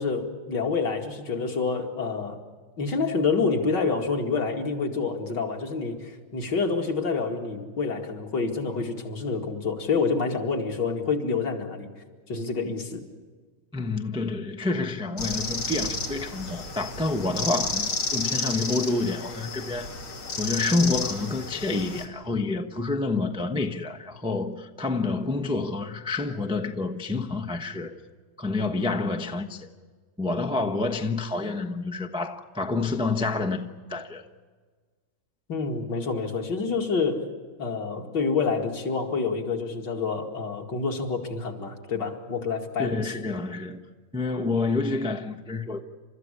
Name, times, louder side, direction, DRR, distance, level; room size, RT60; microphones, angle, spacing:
voice 1, 0.0-2.4 2.8-11.9 12.3-13.0 35.5-37.3 37.6-43.1, left 4 dB, 55° left, 2.9 m, -27 dB
voice 2, 13.7-19.9 20.4-27.9 28.4-29.7 30.2-34.2 42.8-43.8 44.1-45.8, left 3 dB, 5° right, 0.5 m, -28 dB
sound 1, 15.2-22.0, left 3 dB, 75° left, 3.5 m, -31 dB
29.5 x 14.0 x 9.8 m
omnidirectional pair, 2.3 m